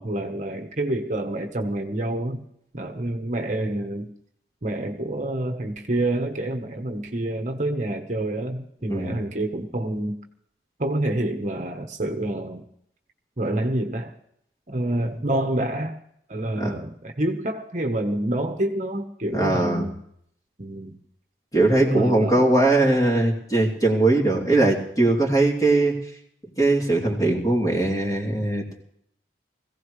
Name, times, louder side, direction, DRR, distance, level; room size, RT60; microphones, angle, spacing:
voice 1, 0.0-2.4 2.7-4.1 4.6-10.1 10.8-12.6 13.4-14.1 14.7-16.0 16.3-20.0 20.6-21.0 21.8-22.5, right 1 dB, 45° right, 4 dB, 1.1 m, -27 dB
voice 2, 19.3-19.8 21.5-25.9 26.6-28.6, right 2 dB, 20° left, -1 dB, 3.1 m, -20 dB
21.5 x 16.0 x 3.2 m, 0.69 s
head